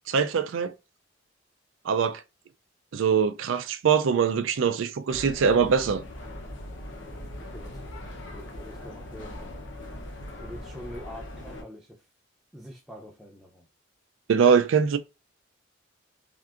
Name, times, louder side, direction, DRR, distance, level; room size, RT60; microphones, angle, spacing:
voice 1, 0.1-0.7 1.8-2.2 2.9-6.0 14.3-15.0, right 6 dB, 80° right, 0.4 m, -23 dB
sound 1, 5.1-11.6, left 1 dB, 75° left, 0.8 m, -40 dB
voice 2, 7.0-9.3 10.4-12.1 12.5-13.7, equal, ahead, 0.5 m, -45 dB
3.4 x 2.5 x 2.4 m
head